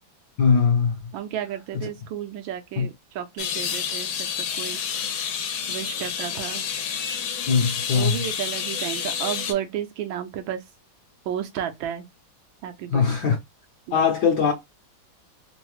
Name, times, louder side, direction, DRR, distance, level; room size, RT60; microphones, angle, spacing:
voice 1, 0.4-1.0 2.8-2.9 7.5-8.1 12.9-13.4 13.9-14.5, left 6 dB, 65° left, 1.3 m, -20 dB
voice 2, 1.1-4.8 5.7-6.6 7.9-10.6 11.3-12.1 12.6-13.1 13.9-14.1, right 10 dB, 80° right, 1.4 m, -32 dB
sound 1, 3.4-9.5, left 7 dB, 85° left, 1.5 m, -29 dB
3.8 x 2.0 x 3.0 m
omnidirectional pair, 2.2 m